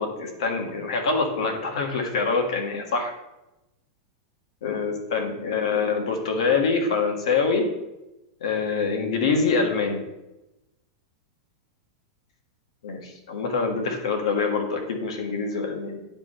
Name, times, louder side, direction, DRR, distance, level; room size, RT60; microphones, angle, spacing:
voice 1, 0.0-3.1 4.6-7.6 8.4-10.0 12.8-16.1, left 4 dB, 80° left, 3 dB, 1.5 m, -25 dB
9.9 x 3.5 x 4.3 m, 0.95 s
hypercardioid pair, 130°, 3 cm